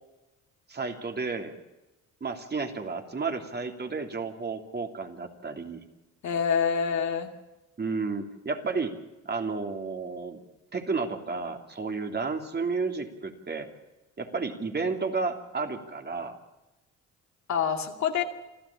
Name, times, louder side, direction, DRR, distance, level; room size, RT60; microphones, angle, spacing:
voice 1, 0.7-1.5 2.2-5.8 7.8-8.9 9.2-10.4 10.7-13.7 14.2-16.4, right 4 dB, 35° right, 4 dB, 3.0 m, -32 dB
voice 2, 6.2-7.3 17.5-18.2, left 7 dB, 65° left, 4 dB, 2.6 m, -26 dB
26.5 x 14.0 x 8.6 m, 1.1 s
cardioid pair, 90°, 30 cm